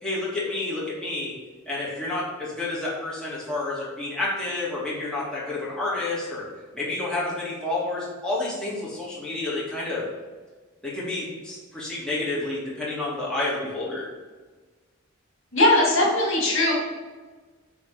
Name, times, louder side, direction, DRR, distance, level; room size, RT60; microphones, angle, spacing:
voice 1, 0.0-1.4 1.7-6.5 6.7-10.0 10.8-14.1, left 2 dB, 5° left, -8 dB, 2.2 m, -29 dB
voice 2, 15.5-16.7, left 1 dB, 65° left, -3 dB, 2.4 m, -19 dB
9.6 x 3.6 x 5.1 m, 1.4 s
head